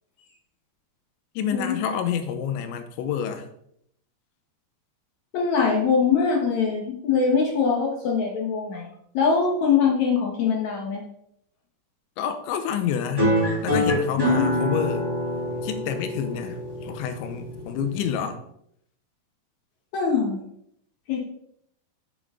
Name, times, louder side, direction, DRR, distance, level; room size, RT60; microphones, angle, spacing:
voice 1, 1.4-3.5 12.2-13.3 13.6-15.1 15.6-18.4, left 8 dB, 90° left, 3.2 m, -28 dB
voice 2, 5.3-11.0 14.2-14.5 19.9-20.4 21.1-21.2, left 5 dB, 70° left, 1.7 m, -23 dB
sound 1, 13.2-18.2, equal, 5° right, 1.8 m, -26 dB
8.5 x 7.9 x 3.7 m
omnidirectional pair, 5.1 m